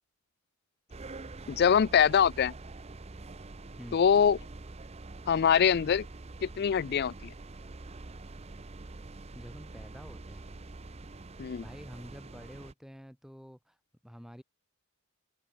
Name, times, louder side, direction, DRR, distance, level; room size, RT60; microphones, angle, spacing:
sound 1, 0.9-12.7, right 2 dB, 30° right, 0.6 m, -45 dB
voice 1, 1.5-2.5 3.9-4.4 5.3-6.1 6.4-7.3 11.4-11.6, left 7 dB, 45° left, 0.4 m, -24 dB
voice 2, 9.3-10.5 11.6-13.8 14.0-14.4, equal, ahead, 5.4 m, -48 dB
head